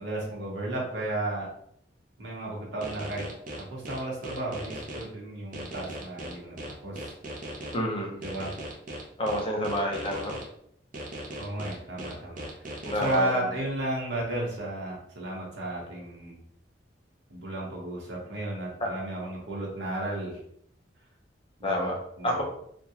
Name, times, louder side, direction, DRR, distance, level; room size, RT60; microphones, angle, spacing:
voice 1, 0.0-1.5 2.2-3.3 3.7-7.1 8.2-8.5 11.4-16.4 17.3-20.4 21.6-22.4, right 1 dB, 75° right, -3 dB, 1.0 m, -33 dB
sound 1, 2.8-5.0 5.5-7.7 8.2-10.4 10.9-13.2, right 1 dB, 45° right, 0.6 m, -38 dB
voice 2, 7.7-8.2 9.2-10.3 12.8-13.4 21.6-22.0 22.2-22.4, left 1 dB, 30° left, 0 dB, 0.7 m, -28 dB
3.5 x 2.3 x 2.8 m, 0.70 s
head